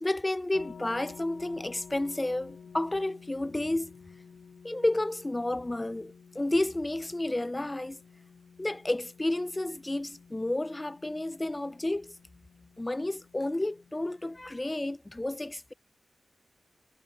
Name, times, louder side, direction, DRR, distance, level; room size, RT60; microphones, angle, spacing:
voice 1, 0.0-3.9 4.6-8.0 8.6-12.1 12.8-15.7, left 1 dB, 15° left, 0.4 m, -31 dB
sound 1, 0.5-14.6, left 6 dB, 75° left, 5.5 m, -52 dB
wide cardioid pair, 110°, 0 cm